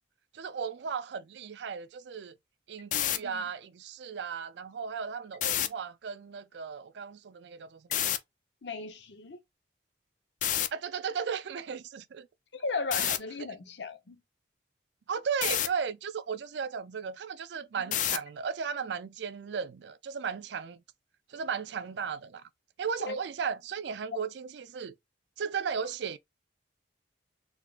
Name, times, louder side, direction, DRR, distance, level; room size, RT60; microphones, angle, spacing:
voice 1, 0.3-2.3 2.7-7.8 10.7-12.3 13.0-13.1 15.1-20.8 21.3-22.4 22.8-24.9 25.4-26.2, right 6 dB, 65° right, 0.4 m, -35 dB
sound 1, 2.8-3.2 5.3-5.7 7.9-8.2 10.4-10.7 12.9-13.2 15.4-15.7 17.9-18.3, left 11 dB, 40° left, 0.3 m, -28 dB
voice 2, 2.9-3.5 8.6-9.4 12.5-14.2 17.8-17.9 23.0-23.2 24.1-24.2, left 4 dB, 65° left, 0.8 m, -37 dB
3.7 x 3.5 x 2.3 m
head